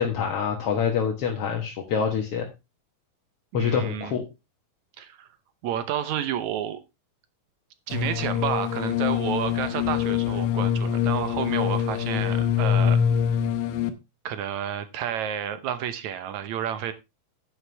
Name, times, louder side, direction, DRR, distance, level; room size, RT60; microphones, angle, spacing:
voice 1, 0.0-2.5 3.5-4.2, left 7 dB, 55° left, 2 dB, 1.8 m, -26 dB
voice 2, 3.5-4.2 5.0-5.3 5.6-6.8 7.9-13.0 14.3-16.9, right 9 dB, 70° right, 12 dB, 1.9 m, -30 dB
sound 1, 7.9-13.9, left 9 dB, 75° left, 2.6 m, -24 dB
10.5 x 9.5 x 3.3 m, 0.25 s
omnidirectional pair, 4.1 m